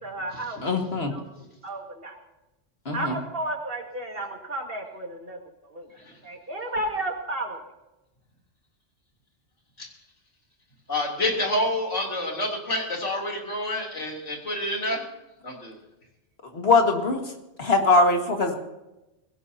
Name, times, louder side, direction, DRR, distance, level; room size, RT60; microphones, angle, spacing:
voice 1, 0.0-2.2 2.9-5.9 6.2-7.7, right 1 dB, 55° right, 2 dB, 2.2 m, -33 dB
voice 2, 0.6-1.1 2.9-3.2 16.5-17.2 17.6-18.6, left 3 dB, 60° left, 3 dB, 2.1 m, -21 dB
voice 3, 10.9-15.0 15.4-15.8, left 1 dB, 85° left, 0 dB, 3.8 m, -28 dB
21.5 x 17.0 x 2.8 m, 0.98 s
omnidirectional pair, 1.2 m